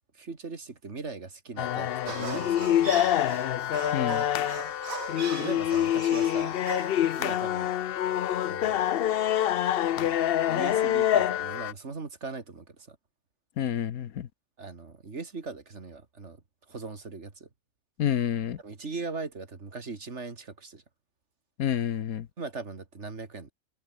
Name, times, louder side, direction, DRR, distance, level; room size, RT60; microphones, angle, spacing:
voice 1, 0.0-3.5 4.9-6.6 7.2-7.8 8.5-8.9 10.0-13.0 14.6-16.4 16.7-17.5 18.6-20.8 22.4-23.5, right 4 dB, 55° right, 2.6 m, -40 dB
sound 1, 1.6-11.7, left 11 dB, 60° left, 0.6 m, -26 dB
sound 2, 2.1-7.2, right 5 dB, 75° right, 2.4 m, -40 dB
voice 2, 3.9-4.2 13.6-14.3 18.0-18.6 21.6-22.3, left 10 dB, 90° left, 1.4 m, -28 dB
omnidirectional pair, 1.5 m